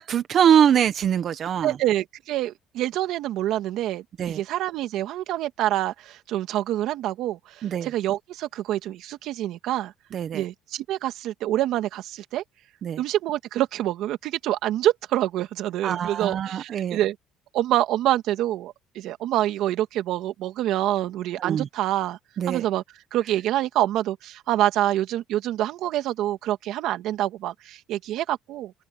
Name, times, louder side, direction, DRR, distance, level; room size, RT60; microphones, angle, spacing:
voice 1, 0.0-1.8 4.2-4.4 7.6-7.9 10.1-10.4 12.8-13.0 15.8-17.0 21.4-21.7 22.4-22.6, right 9 dB, 50° right, 1.4 m, -23 dB
voice 2, 1.6-9.9 10.3-12.4 13.0-17.2 17.5-22.2 22.5-22.8 23.1-28.7, right 13 dB, 70° right, 2.2 m, -26 dB
open air
cardioid pair, 100°, 0 cm